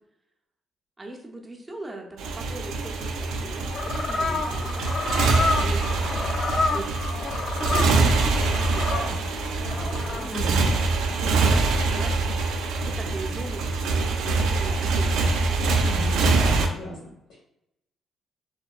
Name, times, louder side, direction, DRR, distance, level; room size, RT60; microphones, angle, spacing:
voice 1, 1.0-6.1 6.7-7.1 7.6-13.8 14.3-15.4, right 2 dB, 20° right, 0 dB, 0.6 m, -39 dB
Motorcycle, 2.2-16.7, right 3 dB, 85° right, 0.3 m, -24 dB
sound 1, 3.4-10.3, left 3 dB, 50° left, 0.4 m, -29 dB
voice 2, 10.3-10.7 15.8-17.0 17.3-17.4, left 1 dB, 90° left, -6 dB, 1.0 m, -34 dB
2.7 x 2.1 x 2.3 m, 0.83 s
cardioid pair, 90°, 0 cm